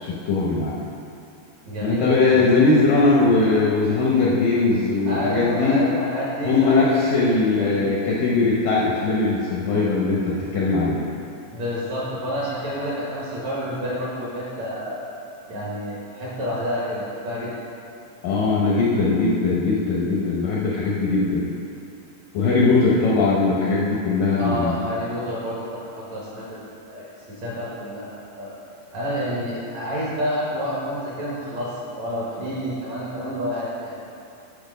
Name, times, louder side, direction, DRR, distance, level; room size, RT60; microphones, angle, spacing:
voice 1, 0.0-0.8 1.8-5.9 6.4-11.0 18.2-21.5 22.3-24.8, left 3 dB, 75° left, -5 dB, 2.0 m, -20 dB
voice 2, 1.7-2.6 5.1-7.2 7.6-7.9 11.5-15.1 15.5-17.5 22.4-22.8 24.4-25.6 25.9-28.6 28.9-34.1, equal, 60° right, -7 dB, 2.0 m, -29 dB
8.9 x 6.6 x 5.3 m, 2.6 s
omnidirectional pair, 4.9 m